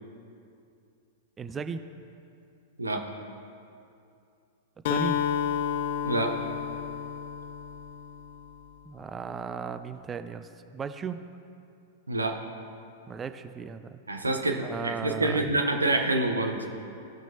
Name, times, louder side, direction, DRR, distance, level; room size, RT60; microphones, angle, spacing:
voice 1, 1.4-1.8 4.9-5.2 8.8-10.5 10.7-11.2 13.1-14.0 14.6-15.6, right 6 dB, 20° right, 10 dB, 0.4 m, -36 dB
Acoustic guitar, 4.9-8.7, left 8 dB, 55° left, 0.5 m, -31 dB
voice 2, 6.0-6.4 12.1-12.4 14.1-16.6, right 2 dB, 85° right, 4 dB, 0.9 m, -27 dB
17.0 x 6.0 x 2.9 m, 2.6 s
figure-of-eight pair, 100°, 0 cm